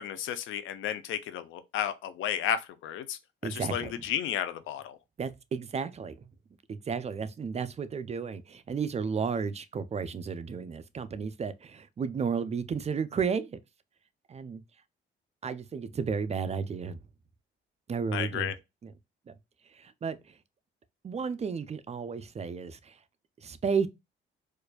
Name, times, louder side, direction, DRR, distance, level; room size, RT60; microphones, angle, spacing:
voice 1, 0.0-3.2 3.5-5.0 18.1-18.5, left 10 dB, 85° left, 0.6 m, -33 dB
voice 2, 3.4-4.0 5.2-6.3 6.7-13.6 14.3-14.6 15.4-17.0 17.9-18.5 18.8-18.9 19.3-19.4 19.7-20.4 21.0-23.0 23.4-23.9, right 6 dB, 35° right, 0.4 m, -33 dB
4.5 x 2.5 x 2.3 m
cardioid pair, 90°, 20 cm